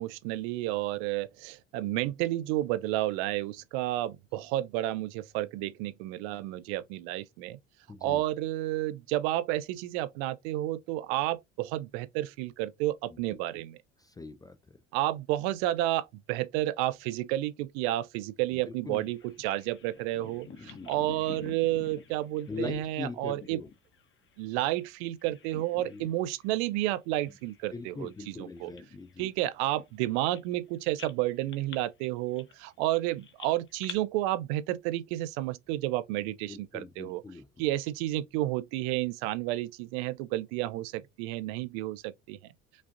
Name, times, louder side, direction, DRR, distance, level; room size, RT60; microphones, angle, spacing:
voice 1, 0.0-7.6 8.0-13.8 14.9-23.6 24.4-28.1 28.4-28.7 29.2-37.2 37.6-42.4, right 15 dB, 60° right, 0.5 m, -31 dB
voice 2, 7.9-8.2 13.1-13.2 14.0-14.7 18.5-19.1 20.6-21.1 22.5-23.7 25.9-26.1 27.7-29.3 36.5-37.5, left 3 dB, 10° left, 0.3 m, -41 dB
Bird vocalization bird call bird song, 18.9-24.9 25.2-26.1 26.4-26.6 27.2-30.6 31.0-33.9, left 6 dB, 30° left, 0.9 m, -49 dB
5.2 x 2.5 x 2.5 m
hypercardioid pair, 70°, 38 cm